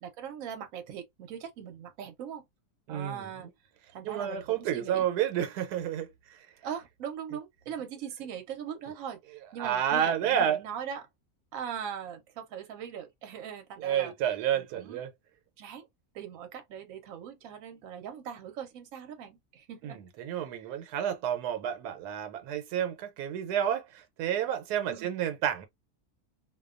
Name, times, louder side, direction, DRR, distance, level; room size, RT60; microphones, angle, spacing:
voice 1, 0.0-2.4 2.9-3.5 3.9-5.1 6.6-11.1 11.5-14.1 14.5-15.0 15.6-15.9 16.1-20.0 20.3-20.7 24.9-25.2, right 8 dB, 65° right, 1.0 m, -40 dB
voice 2, 2.9-3.3 4.0-6.4 9.6-10.6 13.8-15.1 19.8-25.7, right 9 dB, 90° right, 1.2 m, -30 dB
2.6 x 2.2 x 2.4 m
omnidirectional pair, 1.7 m